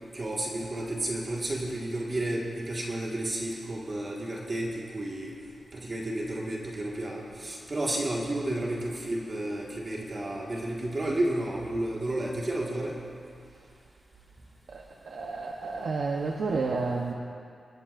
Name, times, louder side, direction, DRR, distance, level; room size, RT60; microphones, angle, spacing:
voice 1, 0.1-5.4 5.7-12.9, right 1 dB, 40° right, -3 dB, 1.8 m, -32 dB
voice 2, 14.7-17.1, right 4 dB, 80° right, 0 dB, 0.9 m, -31 dB
26.5 x 11.5 x 2.6 m, 2.4 s
wide cardioid pair, 100°, 0 cm